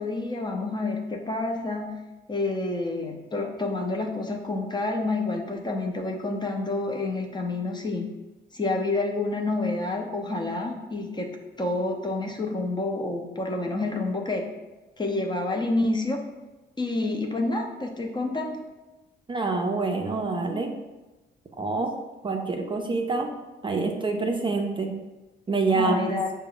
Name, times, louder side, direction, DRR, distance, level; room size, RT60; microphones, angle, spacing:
voice 1, 0.0-2.0 2.3-8.1 8.5-11.3 11.6-14.5 15.0-16.2 16.8-18.6 25.7-26.3, left 2 dB, 20° left, 2 dB, 0.7 m, -28 dB
voice 2, 19.3-20.7 21.6-21.9 22.2-23.3 23.6-25.0 25.5-26.2, right 3 dB, 25° right, 2 dB, 0.5 m, -26 dB
5.8 x 2.2 x 3.8 m, 1.1 s
cardioid pair, 90°, 20 cm